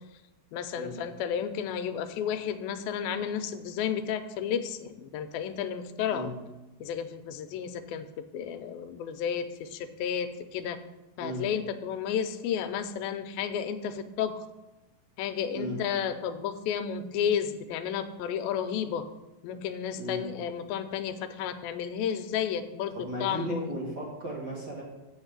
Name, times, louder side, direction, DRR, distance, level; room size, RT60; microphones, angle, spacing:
voice 1, 0.5-6.3 6.8-10.8 11.2-14.4 15.2-19.1 19.4-23.7, left 8 dB, 85° left, 9 dB, 2.5 m, -32 dB
voice 2, 22.9-24.8, right 1 dB, 40° right, -4 dB, 1.6 m, -35 dB
8.0 x 6.0 x 8.0 m, 1.1 s
omnidirectional pair, 4.1 m